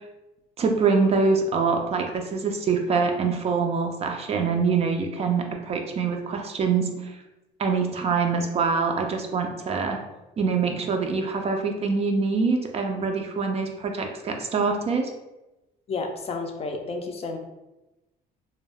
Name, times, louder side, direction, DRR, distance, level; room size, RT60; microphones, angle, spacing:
voice 1, 0.6-7.2 7.6-10.0 10.4-15.1, right 4 dB, 40° right, 3 dB, 0.4 m, -24 dB
voice 2, 15.9-17.4, left 3 dB, 35° left, 4 dB, 0.4 m, -31 dB
2.2 x 2.0 x 3.2 m, 0.99 s
cardioid pair, 110°, 17 cm